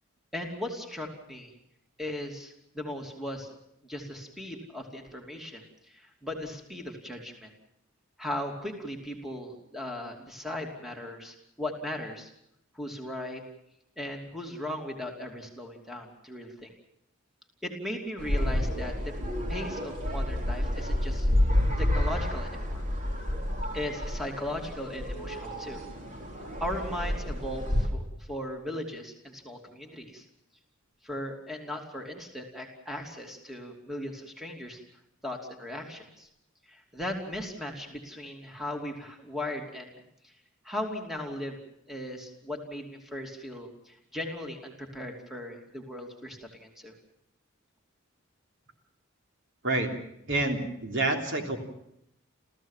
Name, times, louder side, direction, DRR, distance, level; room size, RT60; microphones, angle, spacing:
voice 1, 0.3-1.5 2.0-3.6 3.8-7.5 8.2-12.3 12.7-13.4 14.0-16.7 17.6-19.1 19.5-21.3 21.8-22.8 23.7-25.8 26.6-30.2 31.0-34.8 35.2-36.3 36.7-40.0 40.2-40.3 40.6-41.6 41.9-46.9, left 1 dB, ahead, 2 dB, 2.9 m, -37 dB
sound 1, 18.2-27.9, left 1 dB, 40° right, 3.6 m, -29 dB
voice 2, 50.3-51.6, right 2 dB, 60° right, 3 dB, 3.4 m, -28 dB
29.0 x 15.0 x 7.4 m, 0.79 s
head